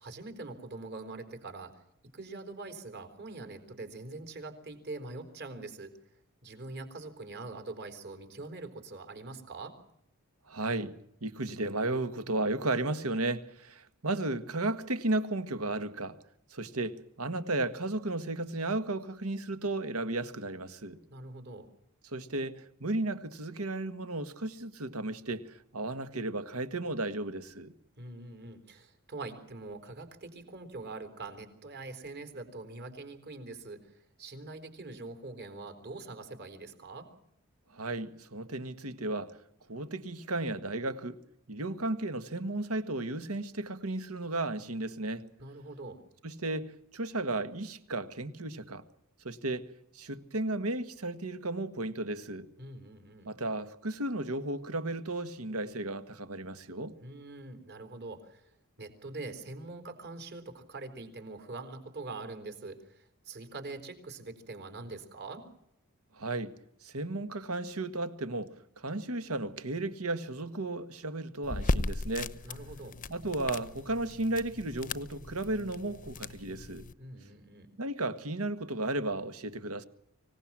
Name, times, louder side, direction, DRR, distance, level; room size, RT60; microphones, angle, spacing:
voice 1, 0.0-1.7 2.1-5.9 6.4-9.8 21.1-21.7 28.0-37.1 45.4-46.0 52.6-53.3 57.0-58.5 58.8-65.4 72.4-73.0 77.0-77.7, right 3 dB, 50° right, 4.1 m, -43 dB
voice 2, 10.5-10.9 11.2-16.2 16.5-21.0 22.0-27.7 37.7-39.3 39.7-41.2 41.5-45.3 46.2-48.8 49.2-49.6 49.9-52.5 53.2-56.9 66.1-66.5 66.8-72.3 73.1-76.9 77.8-79.8, right 2 dB, 75° right, 1.6 m, -34 dB
sound 1, 71.4-76.9, left 2 dB, 35° left, 0.8 m, -37 dB
25.5 x 18.0 x 7.5 m
head